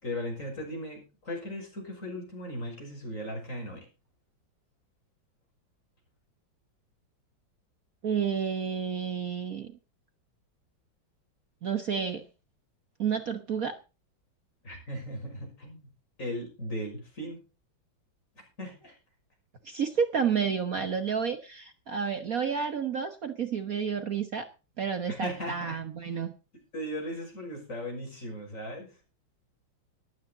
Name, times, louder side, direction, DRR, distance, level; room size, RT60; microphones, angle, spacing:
voice 1, 0.0-3.9 14.6-15.9 16.2-17.4 18.6-18.9 25.1-26.2 26.7-28.9, equal, 40° left, 1 dB, 6.2 m, -37 dB
voice 2, 8.0-9.7 11.6-12.3 13.0-13.8 19.6-24.5 24.8-26.3, right 6 dB, 50° right, 8 dB, 1.5 m, -30 dB
14.5 x 12.5 x 4.0 m, 0.32 s
omnidirectional pair, 2.1 m